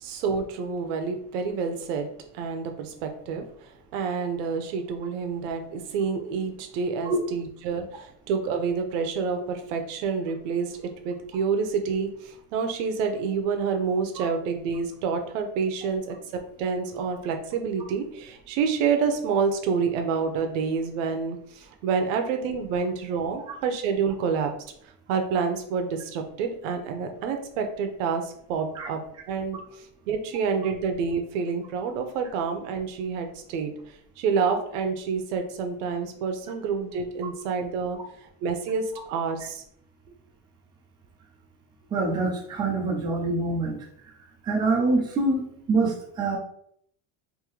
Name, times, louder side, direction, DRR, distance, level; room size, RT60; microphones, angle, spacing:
voice 1, 0.0-2.1 2.3-24.5 25.1-29.0 29.3-29.6 30.1-33.7 34.2-39.6, right 5 dB, 90° right, 5 dB, 0.8 m, -28 dB
voice 2, 41.9-43.8 44.4-46.4, right 3 dB, 15° right, -2 dB, 0.4 m, -25 dB
3.7 x 2.7 x 3.1 m, 0.68 s
cardioid pair, 175°, 36 cm